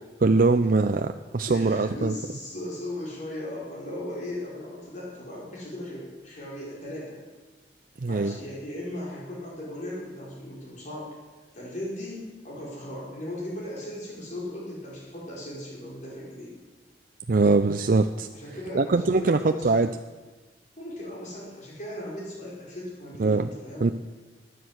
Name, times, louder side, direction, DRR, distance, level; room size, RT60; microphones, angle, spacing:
voice 1, 0.2-2.1 8.0-8.3 17.3-18.3 18.7-19.9 23.2-23.5 23.8-23.9, right 3 dB, 50° right, 8 dB, 0.5 m, -22 dB
voice 2, 1.5-7.2 8.1-11.1 11.5-16.5 18.3-19.9 20.8-23.9, left 1 dB, 45° left, -4 dB, 4.9 m, -37 dB
14.5 x 10.0 x 7.9 m, 1.3 s
head